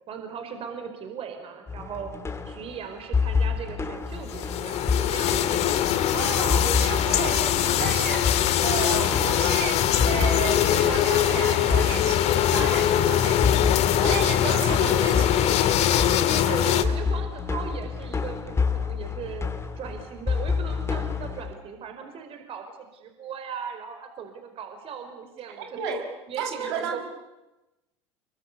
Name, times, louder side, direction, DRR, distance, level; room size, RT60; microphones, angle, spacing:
voice 1, 0.1-2.1 2.4-6.0 16.3-25.9 26.3-27.0, right 7 dB, 40° right, 6 dB, 4.8 m, -38 dB
sound 1, 1.7-21.5, left 5 dB, 20° left, 3.3 m, -29 dB
sound 2, 4.3-16.8, left 11 dB, 45° left, 2.1 m, -22 dB
voice 2, 6.1-9.8 10.0-15.7 25.6-26.1 26.4-27.0, right 6 dB, 65° right, 4 dB, 5.4 m, -32 dB
29.0 x 23.5 x 8.5 m, 1.0 s
figure-of-eight pair, 75°, 15 cm